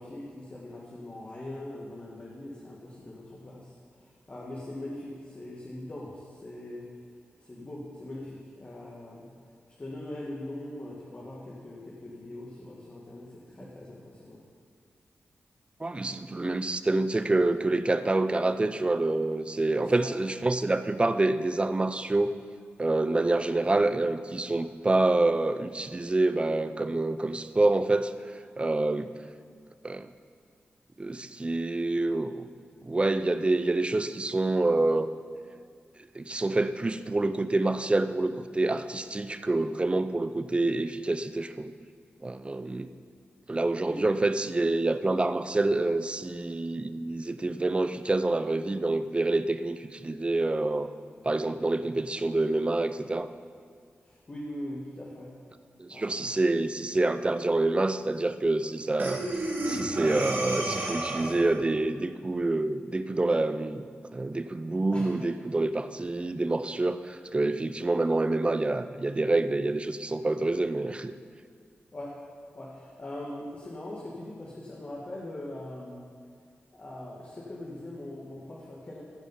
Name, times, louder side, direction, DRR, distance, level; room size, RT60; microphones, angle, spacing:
voice 1, 0.0-7.0 7.4-9.4 9.8-14.4 19.8-20.1 43.9-44.0 54.0-55.4 55.9-56.2 64.9-65.1 71.9-72.2 72.6-76.1 76.7-79.0, left 1 dB, 40° left, -5 dB, 1.8 m, -41 dB
voice 2, 15.8-22.3 22.8-28.1 28.6-29.1 29.8-30.1 31.0-32.5 32.8-35.1 36.1-41.7 42.2-42.9 43.5-50.9 51.2-53.3 55.8-63.9 64.1-71.1, right 2 dB, 25° right, 11 dB, 0.5 m, -27 dB
Breathing, 59.0-61.6, right 1 dB, 55° right, 1.8 m, -31 dB
15.0 x 5.1 x 5.5 m, 2.1 s
cardioid pair, 65°, 4 cm